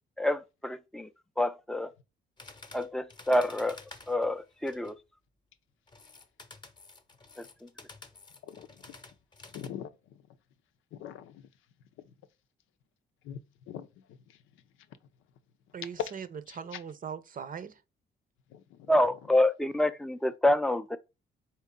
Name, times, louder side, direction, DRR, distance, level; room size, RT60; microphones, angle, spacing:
voice 1, 0.2-1.1 1.4-1.9 2.7-3.8 4.1-5.0 7.4-7.7 18.9-21.0, left 1 dB, ahead, 0.5 m, -27 dB
sound 1, 2.4-5.0 5.9-9.7, left 3 dB, 20° left, 0.9 m, -51 dB
voice 2, 8.4-8.8 9.5-10.2 10.9-11.4 13.2-13.4 13.7-13.9 14.3-14.4 18.5-18.9, left 9 dB, 90° left, 0.6 m, -43 dB
voice 3, 15.7-17.8, right 7 dB, 45° right, 0.7 m, -40 dB
4.5 x 2.7 x 3.6 m
cardioid pair, 90°, 20 cm